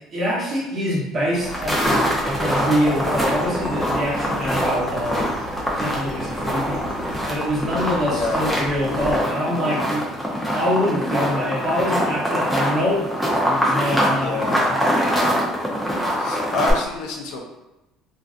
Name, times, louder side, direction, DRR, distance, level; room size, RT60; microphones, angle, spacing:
voice 1, 0.1-5.3 5.8-6.9 7.3-10.1 10.5-14.8, equal, 30° right, -5 dB, 0.9 m, -25 dB
sound 1, 1.3-16.7, equal, ahead, 0.6 m, -23 dB
Chirp tweet, 1.3-9.1, left 1 dB, 50° right, 0.6 m, -37 dB
voice 2, 8.1-8.4 14.1-14.8 16.2-17.4, left 3 dB, 75° left, 2 dB, 0.5 m, -27 dB
2.6 x 2.3 x 2.4 m, 0.99 s
cardioid pair, 125°, 0 cm